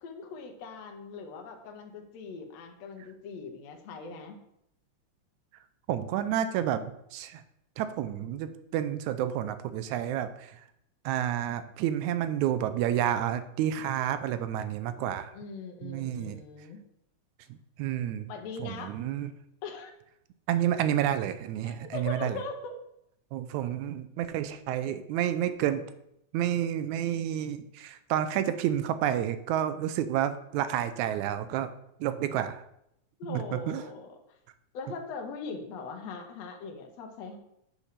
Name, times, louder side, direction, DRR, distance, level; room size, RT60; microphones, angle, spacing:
voice 1, 0.0-4.4 15.3-16.8 18.3-18.9 19.6-19.9 21.6-22.7 33.2-34.2 34.7-37.4, left 4 dB, 70° left, 3 dB, 2.1 m, -40 dB
voice 2, 5.9-6.8 7.1-7.4 7.8-10.6 11.1-15.3 15.8-16.4 17.8-18.3 18.6-19.3 20.5-22.4 23.3-25.9 26.3-31.7 32.0-32.6 33.3-33.8, right 11 dB, 85° right, 11 dB, 2.0 m, -30 dB
7.2 x 4.3 x 6.6 m, 0.77 s
omnidirectional pair, 3.3 m